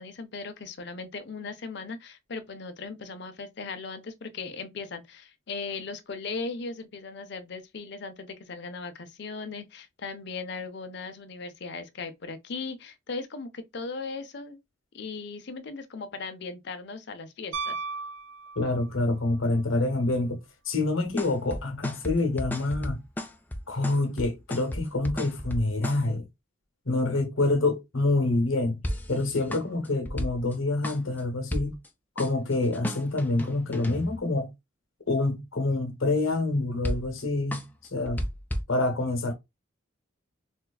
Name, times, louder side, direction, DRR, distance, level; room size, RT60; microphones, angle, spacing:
voice 1, 0.0-14.6 14.9-17.8, left 4 dB, 55° left, 0.6 m, -38 dB
Piano, 17.5-19.1 21.5-21.6, right 4 dB, 70° right, 0.5 m, -35 dB
voice 2, 18.5-20.4 20.6-23.0 23.7-26.3 26.8-28.8 29.1-31.8 32.2-34.5 35.1-38.2 38.7-39.3, left 2 dB, 75° left, 1.0 m, -27 dB
sound 1, 21.1-26.0 28.8-30.5 30.8-31.2 31.5-31.9 32.2-34.2 36.8-37.3 37.5-38.6, equal, 10° left, 0.4 m, -33 dB
4.3 x 2.3 x 2.3 m
head